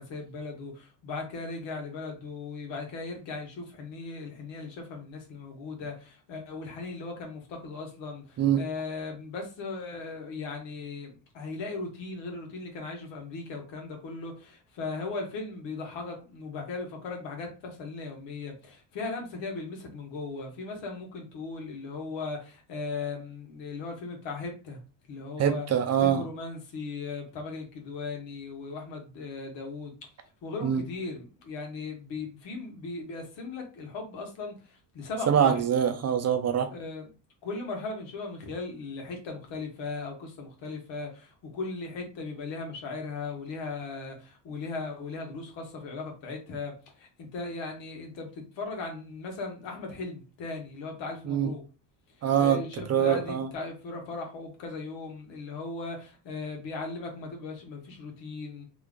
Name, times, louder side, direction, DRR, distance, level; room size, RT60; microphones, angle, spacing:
voice 1, 0.0-24.8 25.1-25.7 26.0-30.1 30.4-35.6 36.7-37.1 37.4-51.6 52.4-58.6, left 3 dB, 80° left, 1.3 m, -38 dB
voice 2, 25.4-26.2 30.6-30.8 35.3-36.7 51.3-51.5 52.2-52.6 52.9-53.5, right 9 dB, 35° right, 0.5 m, -24 dB
2.9 x 2.4 x 3.6 m
cardioid pair, 130°, 43 cm